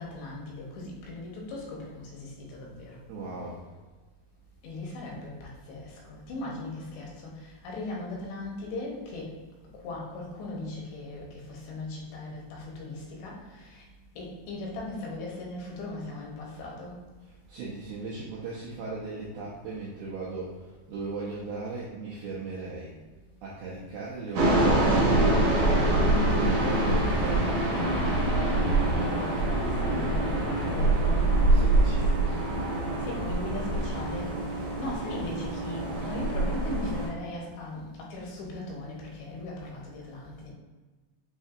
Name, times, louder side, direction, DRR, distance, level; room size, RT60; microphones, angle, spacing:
voice 1, 0.0-3.0 4.6-9.3 9.8-13.8 14.2-17.0 28.3-31.3 33.0-40.5, left 2 dB, 85° left, -2 dB, 3.2 m, -38 dB
voice 2, 3.1-3.6 17.3-22.9 23.4-28.2 31.4-32.3, right 3 dB, 90° right, -6 dB, 2.0 m, -38 dB
sound 1, 24.3-37.1, right 2 dB, 65° right, 1.7 m, -25 dB
7.4 x 2.7 x 2.4 m, 1.3 s
omnidirectional pair, 4.8 m